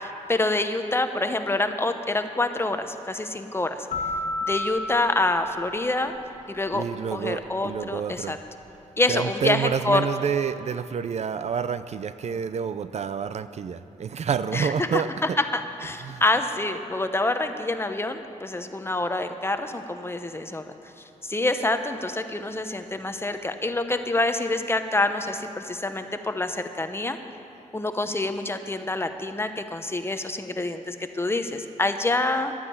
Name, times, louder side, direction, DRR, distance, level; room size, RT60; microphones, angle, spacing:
voice 1, 0.0-3.9 4.5-6.1 6.5-6.8 7.1-8.4 9.0-10.1 14.5-15.0 15.4-20.6 21.2-27.2 27.7-32.5, left 2 dB, 20° left, 8 dB, 0.9 m, -26 dB
sound 1, 3.9-6.7, left 2 dB, 65° left, 1.6 m, -32 dB
voice 2, 6.7-8.4 9.1-15.4 15.8-16.3, right 7 dB, 55° right, 13 dB, 0.5 m, -29 dB
12.0 x 9.5 x 8.7 m, 2.9 s
cardioid pair, 90°, 14 cm